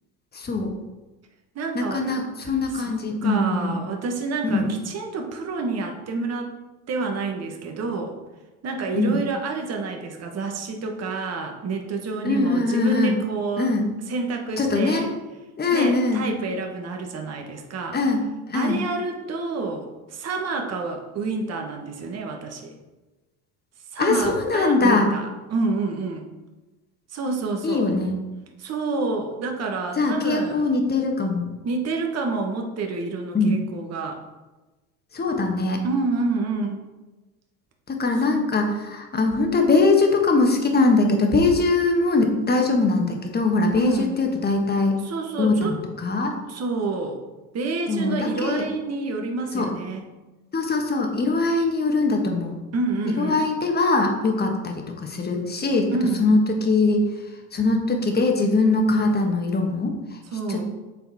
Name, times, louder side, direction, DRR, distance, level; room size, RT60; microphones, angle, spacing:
voice 1, 0.3-0.7 1.7-3.8 4.4-4.7 8.9-9.2 12.2-13.1 13.6-13.9 14.6-15.0 15.6-16.3 17.9-18.2 18.5-18.8 24.0-25.1 27.6-28.2 30.0-31.5 33.3-33.6 35.1-35.8 37.9-45.0 45.4-46.4 47.9-48.7 49.5-49.7 50.5-52.6 53.1-55.9 56.2-57.1 57.5-60.2 60.5-60.6, left 3 dB, 20° left, 3 dB, 1.4 m, -22 dB
voice 2, 1.5-2.2 2.7-2.9 3.2-6.5 6.9-8.1 8.6-13.7 14.1-15.1 15.7-18.0 18.5-22.7 23.9-26.2 27.1-27.9 28.6-30.6 31.6-34.2 35.8-36.9 43.7-44.2 45.0-45.8 46.5-47.2 47.5-50.0 52.7-53.4 55.9-56.3 60.3-60.6, right 3 dB, 35° right, 3 dB, 1.2 m, -28 dB
7.6 x 3.9 x 4.1 m, 1.1 s
hypercardioid pair, 80°, 43 cm